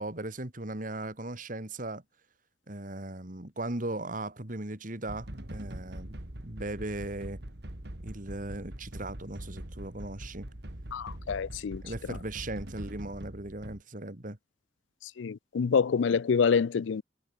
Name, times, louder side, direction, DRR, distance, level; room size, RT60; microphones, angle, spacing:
voice 1, 0.0-2.0 2.7-6.2 6.4-7.4 8.0-10.5 11.8-14.4, right 2 dB, 45° right, 2.2 m, -38 dB
sound 1, 5.1-13.8, right 1 dB, 60° right, 2.9 m, -43 dB
voice 2, 10.9-11.8 15.2-17.0, left 6 dB, 80° left, 0.4 m, -26 dB
head